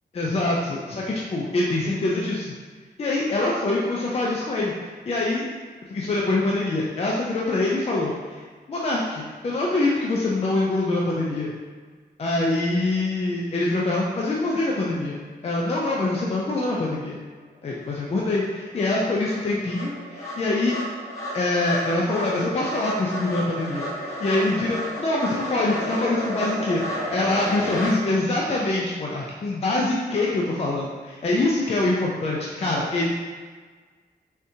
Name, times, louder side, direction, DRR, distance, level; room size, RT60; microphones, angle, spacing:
voice 1, 0.1-2.5 3.0-5.5 5.9-11.5 12.2-17.2 17.6-20.7 21.3-33.1, left 2 dB, 35° left, -4 dB, 0.4 m, -24 dB
sound 1, 17.8-17.9 18.3-27.9, equal, 20° left, 0.9 m, -32 dB
3.5 x 2.6 x 2.6 m, 1.5 s
wide cardioid pair, 120°, 18 cm